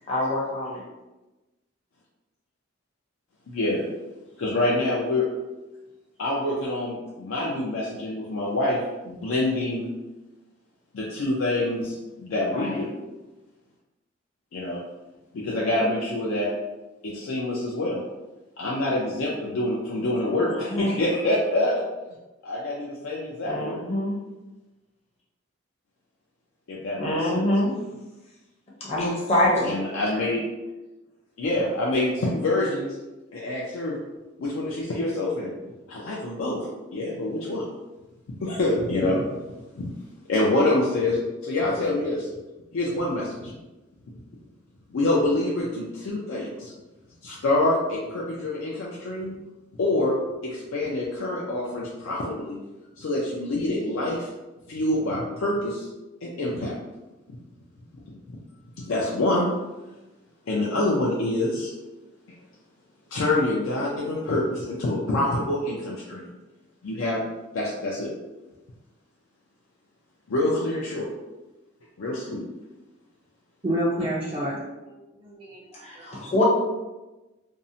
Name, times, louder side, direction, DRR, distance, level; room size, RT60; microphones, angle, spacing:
voice 1, 0.1-0.8 12.5-12.8 20.4-21.0 23.4-24.2 27.0-27.7 28.8-29.7 75.8-76.4, left 1 dB, 30° left, -5 dB, 0.6 m, -25 dB
voice 2, 3.5-3.9 4.4-5.3 6.2-9.9 10.9-12.9 14.5-14.8 15.3-16.5 17.0-18.0 18.6-21.9 22.4-23.8 26.7-27.4 29.6-30.4 31.4-33.0 33.3-34.0 34.4-35.5 35.9-37.7 38.4-39.3 39.7-39.9 40.3-42.3 42.7-43.5 44.9-46.7 47.2-49.3 49.8-50.1 50.4-52.6 53.0-54.3 54.7-55.9 56.2-56.7 58.3-58.4 58.9-59.5 60.5-61.7 63.1-66.3 66.8-67.2 67.5-68.1 70.3-71.1 72.0-72.4, left 2 dB, 80° left, -4 dB, 0.4 m, -26 dB
voice 3, 73.6-74.6 74.8-74.9 75.2-76.2, right 1 dB, 25° right, -7 dB, 0.4 m, -29 dB
2.6 x 2.0 x 2.6 m, 1.1 s
head